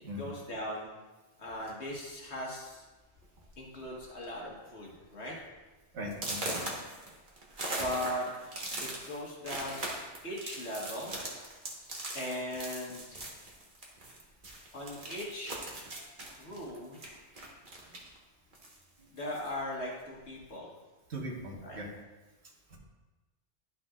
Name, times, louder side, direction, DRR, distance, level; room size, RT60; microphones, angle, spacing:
voice 1, 0.2-0.9 1.4-2.8 3.6-5.4 7.7-8.3 8.8-9.8 10.2-11.2 12.1-13.2 14.7-15.7 16.4-17.0 19.1-20.7 21.6-21.8, left 1 dB, 70° left, -3 dB, 1.7 m, -39 dB
sound 1, 1.6-1.9 2.7-2.8 3.2-3.5 3.8-4.2 4.7-4.8 5.3-5.4 6.1-14.2 14.4-18.2 18.5-19.6, right 1 dB, 45° right, 1.4 m, -40 dB
voice 2, 5.9-6.6 21.1-21.9 22.7-22.8, equal, 65° right, -2 dB, 1.6 m, -39 dB
11.5 x 6.0 x 2.4 m, 1.2 s
omnidirectional pair, 1.2 m